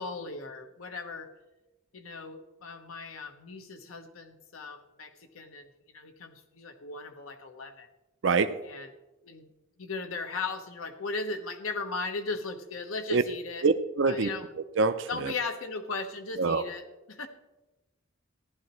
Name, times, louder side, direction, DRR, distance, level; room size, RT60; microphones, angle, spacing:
voice 1, 0.0-1.3 1.9-7.9 8.6-8.9 9.2-9.5 9.8-13.6 14.0-14.5 15.1-17.3, left 3 dB, 85° left, 6 dB, 1.2 m, -37 dB
voice 2, 8.2-8.5 13.1-13.2 13.6-14.3 14.8-15.3 16.4-16.6, right 4 dB, 65° right, 10 dB, 0.5 m, -25 dB
15.0 x 11.5 x 3.1 m, 1.0 s
head